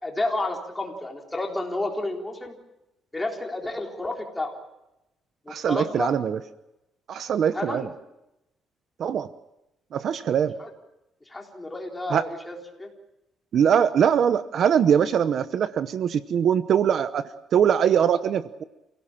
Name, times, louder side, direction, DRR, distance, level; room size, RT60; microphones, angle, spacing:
voice 1, 0.0-2.5 3.1-4.6 5.5-6.1 7.5-7.9 10.6-10.7 11.3-12.9, left 2 dB, 10° left, 1 dB, 3.9 m, -31 dB
voice 2, 5.5-6.4 7.1-7.9 9.0-9.3 9.9-10.5 12.1-12.3 13.5-18.6, right 8 dB, 55° right, 12 dB, 0.8 m, -22 dB
28.5 x 17.0 x 7.4 m, 0.92 s
cardioid pair, 145°, 0 cm